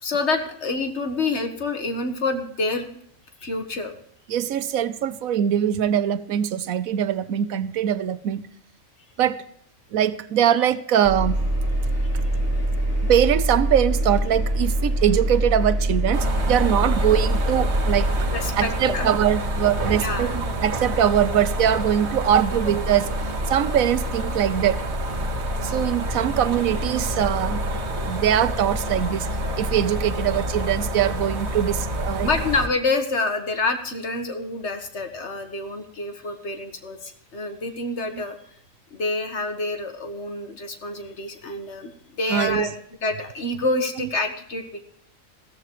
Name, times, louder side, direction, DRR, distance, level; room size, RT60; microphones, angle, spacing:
voice 1, 0.0-2.9 3.4-3.9 18.3-19.1 19.9-20.3 32.2-38.4 38.9-41.9 42.2-42.7 43.0-44.8, left 3 dB, 55° left, 6 dB, 1.7 m, -27 dB
voice 2, 4.3-8.4 9.2-9.4 9.9-11.4 12.1-12.2 13.0-18.1 18.5-23.1 23.5-24.8 25.6-27.6 28.0-29.3 29.6-32.3 38.1-38.2 42.3-42.7 44.0-44.1, right 10 dB, 85° right, 14 dB, 1.2 m, -22 dB
Engine, 11.0-18.3, right 1 dB, 10° left, 2.9 m, -23 dB
sound 1, 16.1-32.7, equal, 55° right, 1.7 m, -28 dB
15.5 x 14.0 x 3.0 m, 0.67 s
omnidirectional pair, 1.4 m